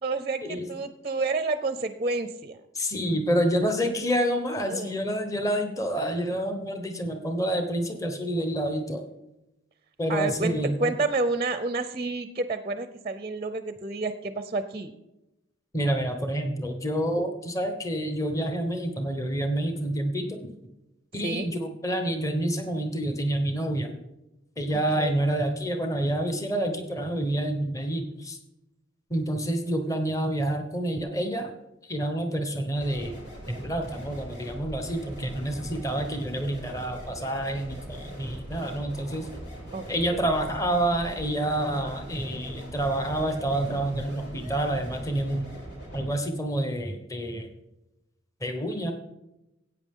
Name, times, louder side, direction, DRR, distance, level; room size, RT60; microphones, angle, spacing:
voice 1, 0.0-2.6 4.7-5.0 10.1-14.9 21.2-21.5 24.9-25.2 39.7-40.3, right 3 dB, 30° right, 10 dB, 0.5 m, -29 dB
voice 2, 2.7-9.1 10.0-10.9 15.7-20.4 21.1-24.0 24.6-28.4 29.1-31.5 31.9-33.2 33.5-39.3 39.9-45.5 45.9-47.5 48.4-48.9, right 1 dB, 15° left, 5 dB, 1.1 m, -28 dB
sound 1, 32.8-46.1, right 1 dB, 55° left, 4.6 m, -41 dB
14.5 x 8.7 x 3.7 m, 0.93 s
head